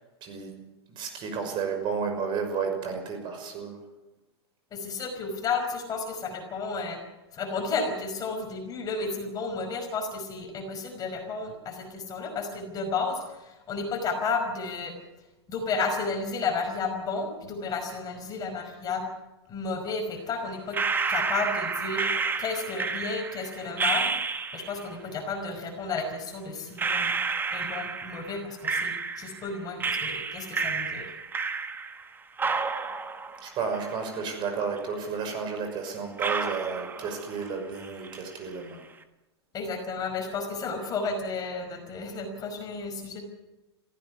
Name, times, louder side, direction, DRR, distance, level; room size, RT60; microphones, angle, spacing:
voice 1, 0.2-0.5 1.0-3.8 33.4-38.8, right 5 dB, 35° right, 5 dB, 5.9 m, -32 dB
voice 2, 4.7-7.0 7.3-14.9 15.5-19.1 19.5-20.8 21.1-22.1 22.4-24.1 24.5-27.1 27.5-31.1 39.5-43.2, left 4 dB, 25° left, 4 dB, 5.2 m, -32 dB
sound 1, 20.7-24.9 26.0-26.1 26.8-29.5 29.8-32.1 32.4-34.5 34.8-34.9 35.5-35.6 36.2-37.5 37.8-38.3, right 4 dB, 15° right, 1.5 m, -30 dB
18.0 x 16.0 x 9.8 m, 1.0 s
hypercardioid pair, 115°, 14 cm